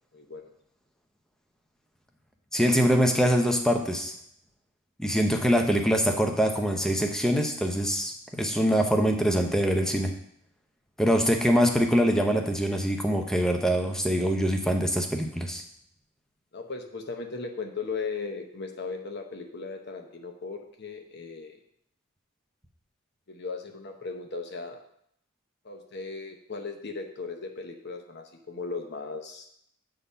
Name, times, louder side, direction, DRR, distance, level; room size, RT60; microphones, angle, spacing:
voice 1, 0.1-0.5 16.5-21.6 23.3-24.8 25.6-29.5, left 4 dB, 50° left, 4 dB, 0.9 m, -37 dB
voice 2, 2.5-4.1 5.0-10.1 11.0-15.6, equal, 5° left, 3 dB, 0.7 m, -24 dB
8.2 x 3.9 x 5.6 m, 0.70 s
head